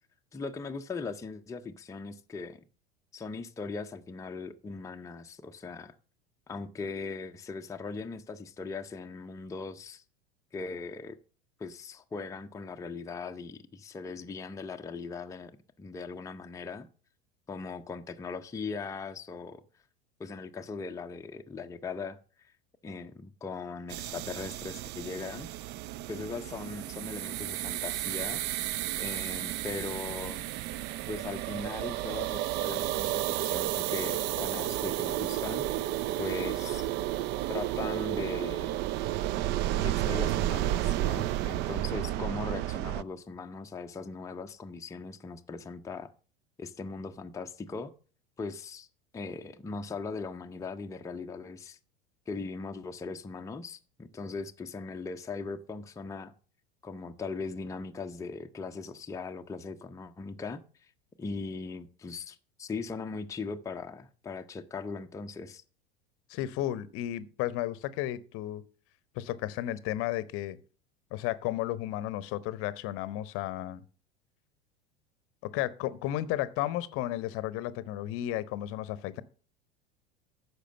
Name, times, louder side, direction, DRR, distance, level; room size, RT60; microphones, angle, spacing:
voice 1, 0.3-2.6 3.1-5.9 6.5-10.0 10.5-11.2 11.6-15.5 15.8-16.9 17.5-19.6 20.2-22.5 22.8-25.5 26.1-28.4 29.0-30.5 31.1-35.7 36.2-36.9 37.5-38.8 39.7-46.1 46.6-47.9 48.4-48.9 49.1-51.8 52.3-56.3 56.8-60.9 61.2-65.6, left 4 dB, 10° left, 0.6 m, -39 dB
sound 1, 23.9-43.0, right 14 dB, 35° right, 0.4 m, -32 dB
voice 2, 66.3-68.6 69.1-70.6 71.1-73.8 75.4-79.2, left 14 dB, 45° left, 0.8 m, -33 dB
10.0 x 6.5 x 6.6 m
figure-of-eight pair, 80°, 31 cm